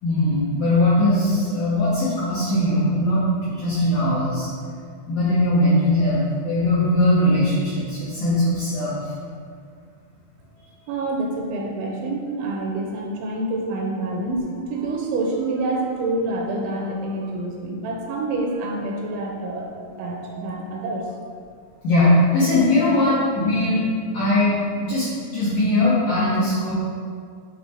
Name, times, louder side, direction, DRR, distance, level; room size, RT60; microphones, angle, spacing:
voice 1, 0.0-4.5 5.1-9.1 21.8-23.8 24.1-26.7, left 1 dB, 75° left, -10 dB, 1.9 m, -20 dB
voice 2, 10.9-21.2, right 2 dB, 80° right, 0 dB, 2.8 m, -27 dB
8.1 x 3.2 x 4.4 m, 2.2 s
omnidirectional pair, 5.5 m